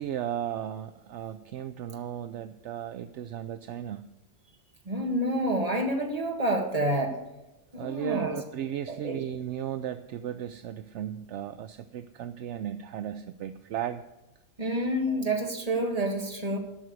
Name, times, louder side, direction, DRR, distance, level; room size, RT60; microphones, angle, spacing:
voice 1, 0.0-4.0 7.8-14.0, right 10 dB, 70° right, 10 dB, 0.9 m, -35 dB
voice 2, 4.9-7.2 7.7-8.4 8.9-9.2 14.6-16.6, right 1 dB, 30° right, 2 dB, 1.9 m, -28 dB
13.0 x 6.3 x 8.2 m, 1.0 s
omnidirectional pair, 1.3 m